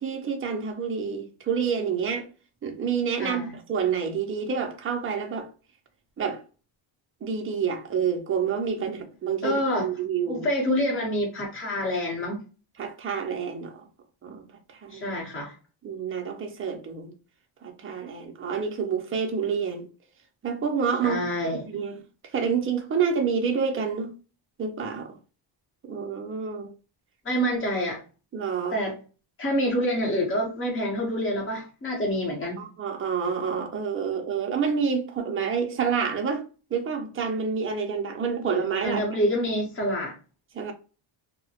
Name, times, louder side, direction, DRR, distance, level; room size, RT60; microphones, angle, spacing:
voice 1, 0.0-2.3 2.6-5.5 6.2-6.4 7.2-10.5 12.8-13.9 14.2-15.1 15.8-17.1 17.6-19.9 20.4-21.2 21.4-22.0 22.3-24.1 24.6-25.2 25.8-26.7 28.3-28.8 32.6-39.0 40.5-40.7, right 6 dB, 30° right, 0.4 m, -28 dB
voice 2, 3.2-3.5 9.4-9.9 10.3-12.4 14.9-15.5 21.0-21.7 27.2-28.0 28.7-29.0 29.4-32.6 38.8-40.1, equal, 25° left, 0.8 m, -27 dB
2.8 x 2.0 x 2.7 m
cardioid pair, 175°, 49 cm